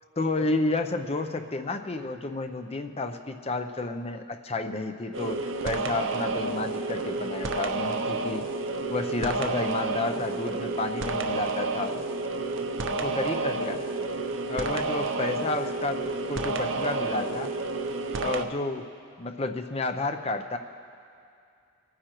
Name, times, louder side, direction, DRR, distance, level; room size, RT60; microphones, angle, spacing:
voice 1, 0.2-8.4 8.9-11.9 13.0-13.8 14.5-17.5 18.2-18.9 19.2-20.6, left 2 dB, 30° left, 7 dB, 0.5 m, -31 dB
sound 1, 5.1-18.5, right 3 dB, 60° right, 0.6 m, -30 dB
23.5 x 9.6 x 3.0 m, 2.4 s
head